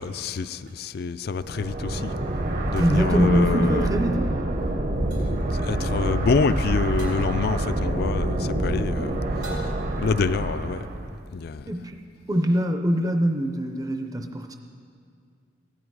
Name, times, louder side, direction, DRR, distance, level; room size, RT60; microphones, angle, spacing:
voice 1, 0.0-2.1 2.7-3.9 5.3-9.2 10.0-10.9 11.3-11.7, left 4 dB, 55° left, 14 dB, 0.4 m, -27 dB
sound 1, 0.7-0.8 2.8-3.3 5.1-5.5 7.0-7.4 9.4-10.1, right 1 dB, 85° right, 3.0 m, -43 dB
sound 2, 1.4-11.2, right 1 dB, 45° right, 0.8 m, -27 dB
voice 2, 2.8-4.2 11.7-12.0 12.3-14.6, equal, 20° right, 5 dB, 0.5 m, -23 dB
15.5 x 11.0 x 4.7 m, 2.3 s
head